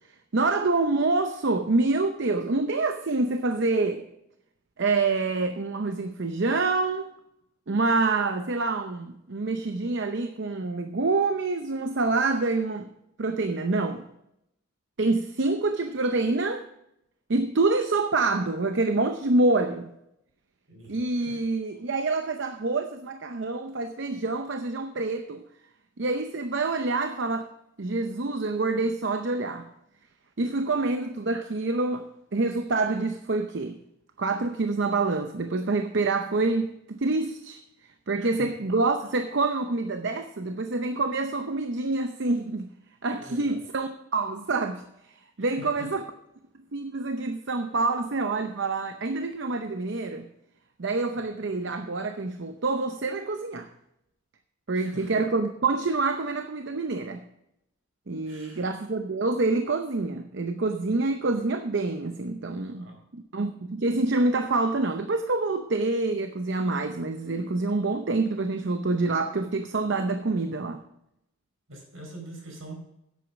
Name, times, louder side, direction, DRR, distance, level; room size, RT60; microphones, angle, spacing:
voice 1, 0.3-4.1 4.8-7.1 7.7-12.9 13.2-14.0 15.0-16.7 17.3-19.9 20.9-25.4 26.0-27.5 27.8-29.7 30.4-32.0 32.3-33.8 34.2-37.6 38.1-42.7 43.0-46.0 46.7-50.3 50.8-53.7 54.7-57.2 58.1-70.8, right 3 dB, 55° right, 0.7 m, -27 dB
voice 2, 20.7-21.4 38.2-38.5 43.1-43.5 45.4-45.9 51.1-51.2 54.7-55.2 58.2-58.6 62.7-63.0 71.7-72.8, right 1 dB, 75° right, 4.7 m, -44 dB
10.5 x 8.3 x 5.2 m
head